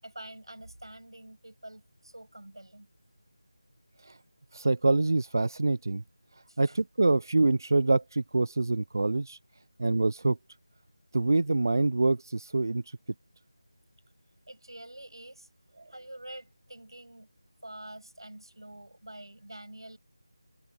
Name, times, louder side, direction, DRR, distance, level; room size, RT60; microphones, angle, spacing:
voice 1, 0.0-2.9 6.5-6.8 14.5-15.5 15.9-17.3 17.6-20.0, right 1 dB, 70° right, 8.0 m, -46 dB
voice 2, 4.5-6.0 6.6-9.4 9.8-10.4 11.1-13.0, right 2 dB, 45° right, 0.5 m, -25 dB
figure-of-eight pair, 165°, 2 cm